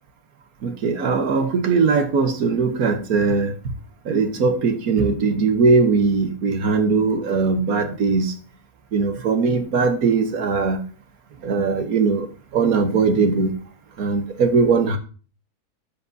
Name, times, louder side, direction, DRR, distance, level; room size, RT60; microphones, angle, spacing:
voice 1, 0.6-3.5 4.0-8.3 8.9-10.8 11.4-12.3 12.5-13.5 14.0-15.0, right 4 dB, 70° right, 7 dB, 1.5 m, -20 dB
12.5 x 8.2 x 2.7 m, 0.38 s
omnidirectional pair, 1.6 m